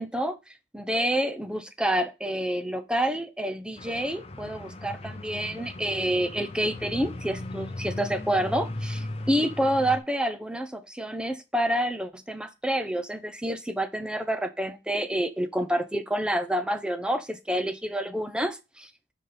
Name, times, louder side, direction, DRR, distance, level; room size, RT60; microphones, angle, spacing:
voice 1, 0.0-18.9, right 1 dB, 5° right, 0.6 m, -28 dB
sound 1, 3.8-10.0, left 1 dB, 35° left, 0.7 m, -37 dB
5.6 x 4.2 x 5.0 m
head